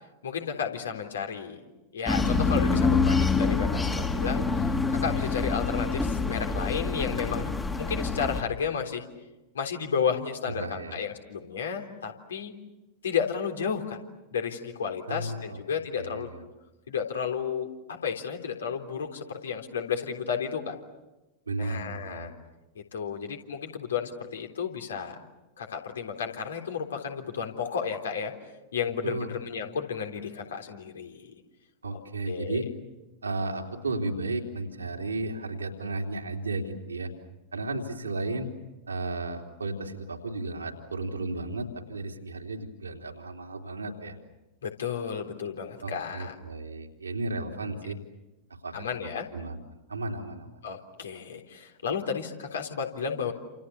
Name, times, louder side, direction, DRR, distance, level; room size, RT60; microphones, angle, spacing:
voice 1, 0.2-1.6 1.9-4.7 5.0-7.5 7.8-9.0 9.5-12.5 13.0-14.0 14.3-16.3 16.9-20.8 21.6-22.3 22.8-25.3 25.6-28.3 28.7-31.3 31.9-32.0 32.3-32.7 44.6-46.4 48.7-49.3 50.6-53.3, left 7 dB, 65° left, 4 dB, 3.7 m, -32 dB
sound 1, 2.1-8.4, left 4 dB, 15° left, 2.5 m, -26 dB
voice 2, 10.5-11.0 15.1-15.6 16.0-16.4 21.5-22.4 29.0-29.3 31.8-32.7 33.2-37.1 37.5-38.5 38.9-44.2 45.8-48.0 48.5-49.6 49.9-50.6, right 2 dB, 75° right, 2 dB, 3.4 m, -34 dB
29.5 x 28.0 x 7.0 m, 1.0 s
figure-of-eight pair, 90°, 0 cm